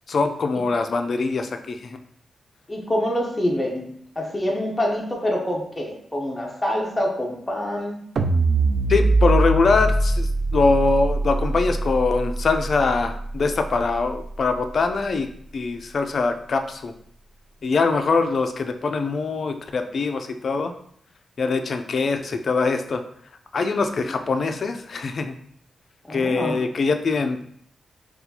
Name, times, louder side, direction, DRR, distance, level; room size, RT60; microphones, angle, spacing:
voice 1, 0.1-2.0 8.9-16.9 17.6-20.7 21.4-23.0 23.5-25.4 26.1-27.5, left 4 dB, 55° left, 7 dB, 0.3 m, -23 dB
voice 2, 2.7-3.9 4.2-8.0 26.1-26.6, left 1 dB, 15° left, -1 dB, 0.6 m, -26 dB
sound 1, 8.2-14.5, right 2 dB, 60° right, 0.3 m, -23 dB
4.1 x 2.3 x 2.7 m, 0.65 s
wide cardioid pair, 105°, 0 cm